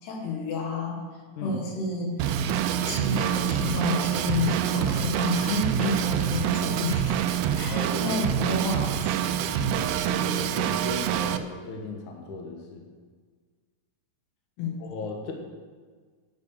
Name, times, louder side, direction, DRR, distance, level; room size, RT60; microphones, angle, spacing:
voice 1, 0.0-1.0 1.4-2.3 2.9-7.2 7.6-9.8 14.6-14.8, left 3 dB, 80° left, 0 dB, 3.8 m, -30 dB
Drum kit / Drum, 2.2-11.4, right 9 dB, 85° right, 2.1 m, -26 dB
voice 2, 7.7-8.1 10.1-12.8 14.8-15.3, left 3 dB, 60° left, 2 dB, 2.4 m, -36 dB
9.6 x 8.3 x 6.5 m, 1.6 s
omnidirectional pair, 4.7 m